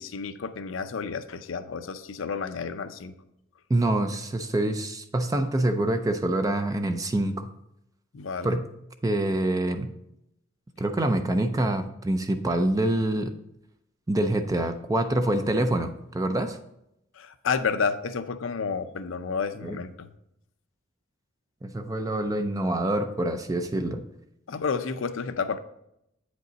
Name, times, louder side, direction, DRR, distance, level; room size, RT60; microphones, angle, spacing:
voice 1, 0.0-3.1 8.1-8.6 17.2-20.1 24.5-25.6, left 5 dB, 80° left, 11 dB, 0.6 m, -30 dB
voice 2, 3.7-7.5 8.4-8.7 9.0-9.9 10.8-13.3 14.1-16.6 19.6-19.8 21.6-24.0, right 1 dB, 20° right, 8 dB, 0.4 m, -26 dB
8.6 x 5.2 x 4.0 m, 0.80 s
head